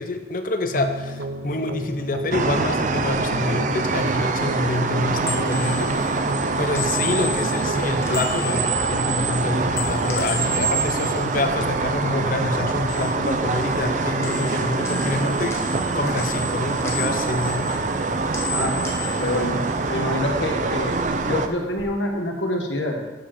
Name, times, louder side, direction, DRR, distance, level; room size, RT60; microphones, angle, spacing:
voice 1, 0.0-5.9 6.6-17.8, left 2 dB, 45° left, 6 dB, 0.7 m, -27 dB
sound 1, 0.7-9.7, right 1 dB, 85° right, 0.6 m, -34 dB
sound 2, 2.3-21.5, right 3 dB, 40° right, 0.5 m, -24 dB
sound 3, 4.9-12.2 12.5-13.9 14.2-20.2 20.5-21.8, left 4 dB, 15° left, 1.1 m, -36 dB
voice 2, 19.2-19.6 19.9-20.9 21.2-23.0, left 1 dB, 85° left, 1 dB, 1.5 m, -26 dB
12.5 x 5.3 x 4.3 m, 1.2 s
head